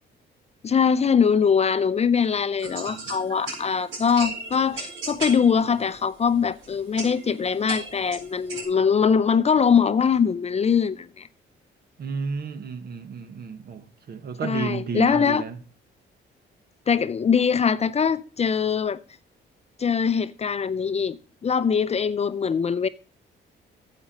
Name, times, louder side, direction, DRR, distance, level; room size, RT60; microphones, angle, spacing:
voice 1, 0.6-11.3 14.4-15.4 16.9-19.0 19.8-22.9, left 6 dB, 30° left, 0.5 m, -22 dB
sound 1, 2.6-8.6, right 3 dB, 75° right, 4.4 m, -37 dB
voice 2, 12.0-15.6, right 5 dB, 55° right, 1.2 m, -32 dB
9.5 x 7.7 x 5.3 m
cardioid pair, 90°, 20 cm